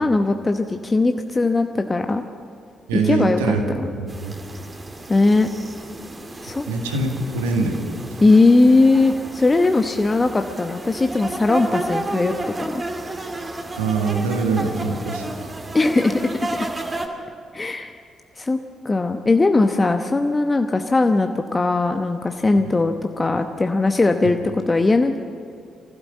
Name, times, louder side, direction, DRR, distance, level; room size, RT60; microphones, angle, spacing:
voice 1, 0.0-2.2 2.9-3.4 3.7-3.9 5.1-5.5 6.4-6.6 8.2-12.3 12.6-12.8 15.7-16.3 17.5-17.9 18.4-18.6 18.8-25.2, left 3 dB, 25° left, 6 dB, 0.9 m, -19 dB
voice 2, 2.9-4.3 6.7-7.8 13.8-15.5, right 4 dB, 75° right, 3 dB, 1.9 m, -23 dB
sound 1, 4.1-17.1, right 2 dB, 25° right, 2.4 m, -32 dB
24.5 x 15.5 x 7.4 m, 2.3 s
figure-of-eight pair, 40°, 0 cm